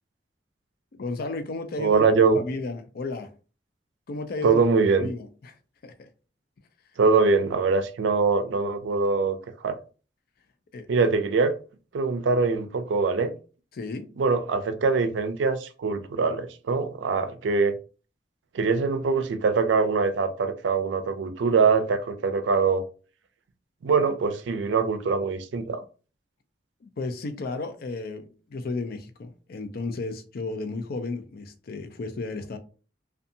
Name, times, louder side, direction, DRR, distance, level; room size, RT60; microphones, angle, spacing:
voice 1, 1.0-2.0 2.3-3.3 4.1-4.6 5.0-5.6 5.8-6.1 10.7-10.9 13.7-14.1 26.8-32.6, left 3 dB, 55° left, 0.4 m, -33 dB
voice 2, 1.8-2.4 4.4-5.1 7.0-9.8 10.9-11.6 11.9-13.3 14.2-17.8 18.5-22.8 23.8-25.8, right 4 dB, 80° right, 0.4 m, -23 dB
2.6 x 2.3 x 2.6 m
head